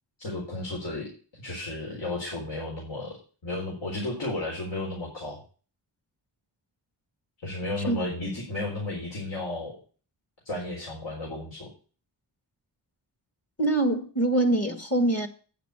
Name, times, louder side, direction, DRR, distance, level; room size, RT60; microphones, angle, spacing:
voice 1, 0.2-3.2 3.4-5.4 7.4-9.8 10.4-11.7, left 2 dB, 70° left, 4.2 m, -33 dB
voice 2, 13.6-15.3, right 2 dB, 35° left, 1.7 m, -24 dB
9.0 x 6.8 x 6.7 m
wide cardioid pair, 90°, 44 cm